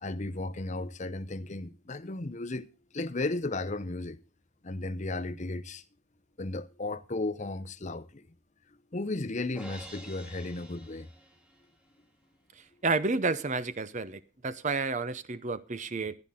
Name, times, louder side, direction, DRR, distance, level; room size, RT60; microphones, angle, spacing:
voice 1, 0.0-2.7 2.9-4.2 4.6-5.8 6.4-8.2 8.9-11.1, left 2 dB, 35° left, 0.7 m, -34 dB
Crash cymbal, 9.5-11.8, right 1 dB, 5° right, 1.7 m, -49 dB
voice 2, 12.8-16.1, right 3 dB, 35° right, 0.7 m, -30 dB
14.5 x 12.0 x 3.7 m
head